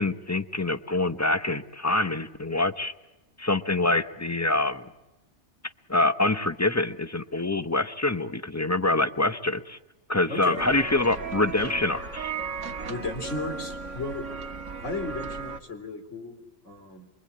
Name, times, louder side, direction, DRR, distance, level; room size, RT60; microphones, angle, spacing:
voice 1, 0.0-2.9 3.4-4.9 5.9-9.8 10.1-12.3, left 2 dB, 15° left, 11 dB, 0.7 m, -25 dB
voice 2, 10.3-10.6 12.9-14.2 14.8-17.1, left 2 dB, 80° left, 5 dB, 3.8 m, -35 dB
sound 1, 10.6-15.6, right 4 dB, 80° right, 1.8 m, -36 dB
26.0 x 23.0 x 8.6 m, 1.1 s
omnidirectional pair, 1.2 m